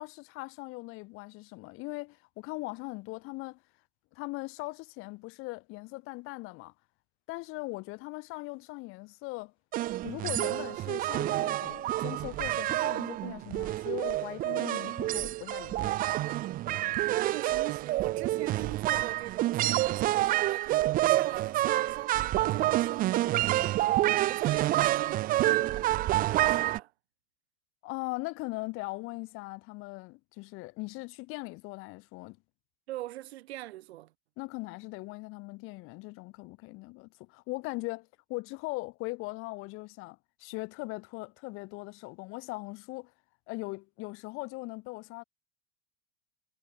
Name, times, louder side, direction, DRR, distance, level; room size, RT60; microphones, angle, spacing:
voice 1, 0.0-3.6 4.1-6.7 7.3-9.5 10.0-16.0 27.8-32.4 34.4-43.1 43.5-45.2, left 24 dB, 40° left, 3.4 m, -40 dB
sound 1, 9.7-26.8, right 15 dB, 25° right, 0.9 m, -28 dB
voice 2, 17.1-23.8 24.3-26.9 32.9-34.1, right 16 dB, 75° right, 5.5 m, -42 dB
supercardioid pair, 160°, 32 cm